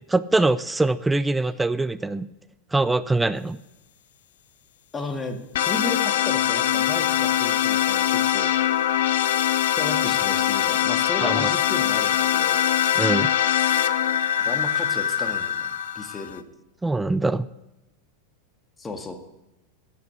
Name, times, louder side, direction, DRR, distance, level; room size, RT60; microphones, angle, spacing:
voice 1, 0.1-2.3 2.7-3.6 11.2-11.5 13.0-13.3 16.8-17.5, right 2 dB, 10° right, 16 dB, 0.5 m, -23 dB
voice 2, 4.9-8.5 9.8-12.6 14.4-15.7 16.0-16.4 18.8-19.2, left 2 dB, 20° left, 6 dB, 1.8 m, -34 dB
sound 1, 5.5-16.4, left 11 dB, 65° left, 0.7 m, -22 dB
10.5 x 8.2 x 8.5 m, 0.97 s
figure-of-eight pair, 90°, 0 cm